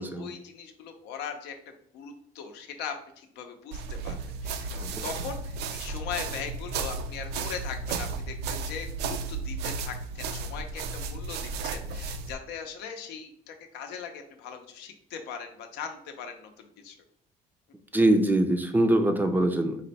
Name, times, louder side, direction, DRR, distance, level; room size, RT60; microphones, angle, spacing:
voice 1, 0.0-4.2 4.4-17.0, left 7 dB, 85° left, 5 dB, 0.6 m, -40 dB
sound 1, 3.7-12.3, right 4 dB, 80° right, 0.4 m, -34 dB
voice 2, 17.9-19.8, right 1 dB, 10° right, 6 dB, 0.4 m, -23 dB
4.1 x 2.1 x 4.0 m, 0.69 s
cardioid pair, 110°, 17 cm